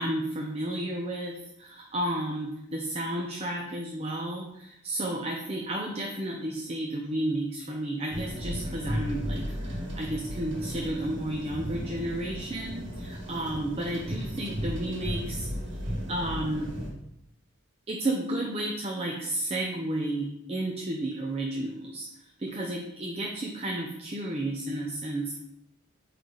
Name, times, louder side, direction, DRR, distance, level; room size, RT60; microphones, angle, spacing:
voice 1, 0.0-15.5 16.1-16.7 17.9-22.1 22.4-25.4, right 1 dB, 30° right, 0 dB, 0.6 m, -32 dB
sound 1, 8.1-16.9, equal, 70° right, 1.7 m, -35 dB
8.7 x 3.3 x 3.9 m, 0.83 s
head